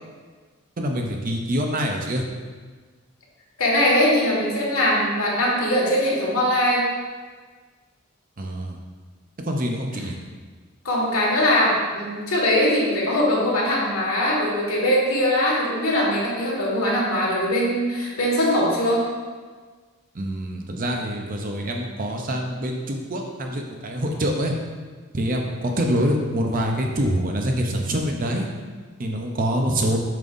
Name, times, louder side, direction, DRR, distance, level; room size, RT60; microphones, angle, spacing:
voice 1, 0.8-2.2 8.4-8.8 9.4-10.2 20.1-24.5 25.1-28.5 29.0-30.0, equal, 40° right, 2 dB, 0.6 m, -25 dB
voice 2, 3.6-6.8 10.8-19.1, left 1 dB, 85° left, -4 dB, 1.7 m, -21 dB
7.4 x 5.4 x 2.6 m, 1.4 s
head